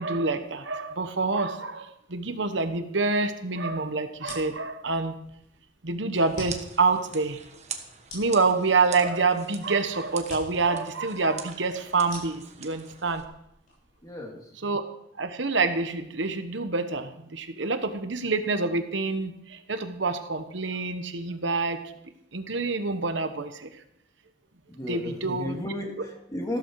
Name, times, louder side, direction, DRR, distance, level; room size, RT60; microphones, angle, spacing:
voice 1, 0.0-5.2 5.8-7.4 8.1-13.2 14.6-14.8 15.2-21.8 22.3-23.7 24.9-25.6, right 3 dB, 65° right, 8 dB, 1.2 m, -27 dB
sound 1, 4.1-14.0, left 2 dB, 45° left, 7.5 m, -47 dB
sound 2, 6.1-13.2, right 7 dB, 35° right, 1.4 m, -44 dB
voice 2, 14.0-14.5 24.7-26.6, left 1 dB, 20° left, 1 dB, 2.5 m, -34 dB
14.5 x 13.5 x 4.8 m, 0.75 s
head